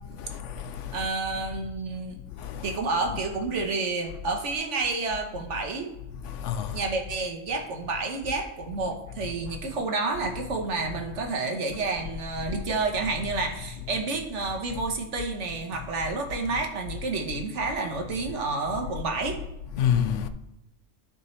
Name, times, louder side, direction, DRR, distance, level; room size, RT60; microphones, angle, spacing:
voice 1, 0.1-1.1 2.4-2.8 6.2-6.9 19.7-20.3, left 8 dB, 70° left, 0.9 m, -29 dB
voice 2, 0.9-2.2 2.6-6.0 6.7-19.4, right 3 dB, 65° right, 1.3 m, -30 dB
12.5 x 5.1 x 3.2 m
omnidirectional pair, 1.4 m